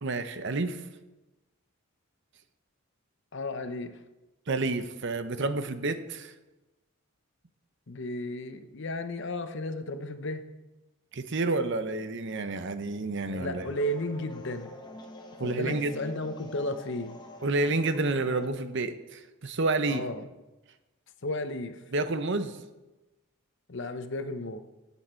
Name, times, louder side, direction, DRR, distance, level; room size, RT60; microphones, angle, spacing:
voice 1, 0.0-0.8 4.5-6.3 11.1-13.6 15.4-15.9 17.4-20.0 21.9-22.6, right 3 dB, 55° right, 10 dB, 0.8 m, -29 dB
voice 2, 3.3-3.9 7.9-10.4 13.4-14.7 15.4-17.1 19.9-20.2 21.2-21.8 23.7-24.6, left 1 dB, 60° left, 9 dB, 0.8 m, -34 dB
sound 1, 13.3-18.5, left 1 dB, 20° left, 1.1 m, -45 dB
17.5 x 7.1 x 4.4 m, 1.1 s
head